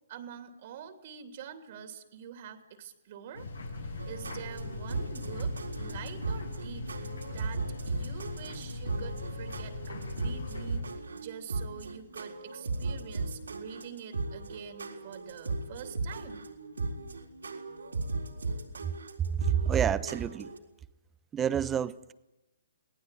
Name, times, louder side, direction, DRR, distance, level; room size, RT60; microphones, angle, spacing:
voice 1, 0.1-3.5 3.8-6.9 7.3-16.4, right 8 dB, 50° right, 7 dB, 2.9 m, -46 dB
sound 1, 3.3-10.8, left 3 dB, 80° left, 6.3 m, -40 dB
sound 2, 4.0-20.6, right 3 dB, 80° right, 4.1 m, -37 dB
voice 2, 19.4-20.5 21.3-22.1, right 8 dB, 15° right, 16 dB, 0.9 m, -28 dB
26.0 x 18.5 x 9.2 m, 0.97 s
figure-of-eight pair, 130°, 0 cm